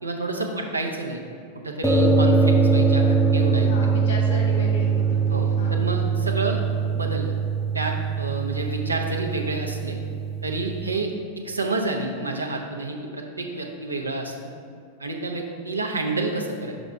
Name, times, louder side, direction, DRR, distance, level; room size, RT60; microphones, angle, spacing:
voice 1, 0.0-1.2 1.6-3.7 5.3-6.6 6.9-7.3 7.7-10.0 10.4-11.1 11.4-14.3 15.0-16.7, right 2 dB, 80° right, 2 dB, 0.6 m, -29 dB
sound 1, 1.8-11.0, right 4 dB, ahead, 0.4 m, -22 dB
voice 2, 3.6-5.8, equal, 65° left, -1 dB, 1.4 m, -35 dB
6.0 x 4.1 x 4.5 m, 2.4 s
figure-of-eight pair, 90°, 0 cm